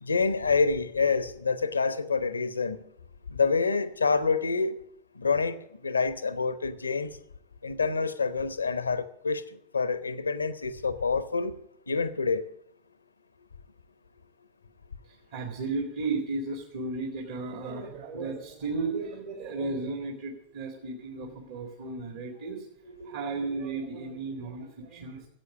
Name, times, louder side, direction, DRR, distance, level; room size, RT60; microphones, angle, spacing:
voice 1, 0.0-2.8 3.3-4.8 5.2-5.6 5.8-7.1 7.6-11.5 11.9-12.5, left 4 dB, 75° left, 0.9 m, -27 dB
voice 2, 15.1-25.3, right 3 dB, 55° right, 2.0 m, -34 dB
14.5 x 8.3 x 8.2 m
figure-of-eight pair, 90°, 0 cm